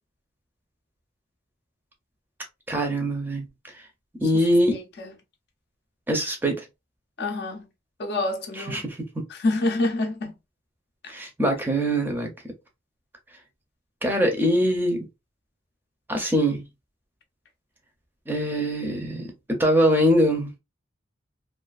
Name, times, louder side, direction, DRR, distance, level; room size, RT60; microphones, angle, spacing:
voice 1, 2.7-3.5 4.2-4.8 6.1-6.6 8.6-9.2 11.1-12.3 14.0-15.0 16.1-16.6 18.3-20.5, equal, 10° right, 0.5 m, -23 dB
voice 2, 4.7-5.1 7.2-7.6 8.0-8.8 9.3-10.3 11.0-11.1, left 2 dB, 55° left, 0.5 m, -27 dB
2.4 x 2.4 x 2.3 m
head